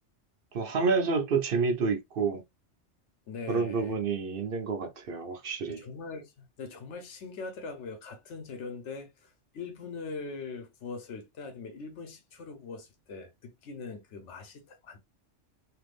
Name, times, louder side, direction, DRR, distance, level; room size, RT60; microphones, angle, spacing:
voice 1, 0.5-2.4 3.5-5.8, right 4 dB, 55° right, 0.8 m, -29 dB
voice 2, 3.3-4.0 5.8-15.0, left 4 dB, 75° left, 1.0 m, -42 dB
3.3 x 2.7 x 2.4 m
omnidirectional pair, 1.2 m